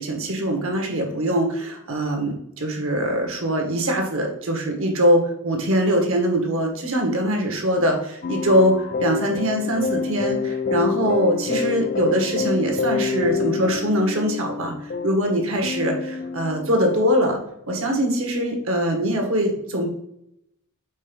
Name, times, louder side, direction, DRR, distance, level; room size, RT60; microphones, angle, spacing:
voice 1, 0.0-17.4 17.7-19.9, equal, 60° right, 2 dB, 1.6 m, -22 dB
sound 1, 8.2-17.3, left 5 dB, 40° left, 0.4 m, -27 dB
5.4 x 4.7 x 5.3 m, 0.78 s
head